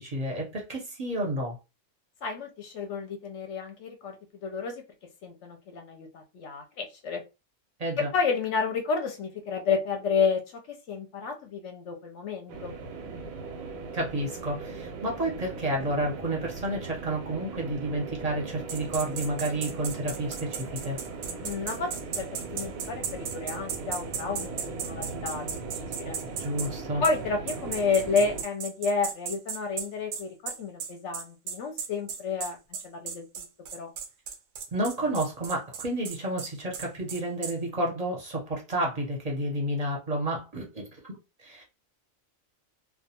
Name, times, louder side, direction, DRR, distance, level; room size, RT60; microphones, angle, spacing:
voice 1, 0.0-1.6 7.8-8.1 13.9-21.0 26.4-27.0 34.7-40.9 41.4-41.6, right 1 dB, 40° right, 0.6 m, -30 dB
voice 2, 2.2-4.8 5.2-7.2 8.0-10.6 10.9-12.7 21.4-21.9 22.2-25.5 25.7-26.2 27.0-32.6 32.8-33.4 33.7-33.9, left 5 dB, 70° left, 0.8 m, -31 dB
sound 1, 12.5-28.4, right 4 dB, 85° right, 1.0 m, -39 dB
sound 2, 18.7-26.7 27.0-27.2 27.5-37.5, right 7 dB, 70° right, 0.8 m, -35 dB
2.3 x 2.3 x 2.7 m
omnidirectional pair, 1.4 m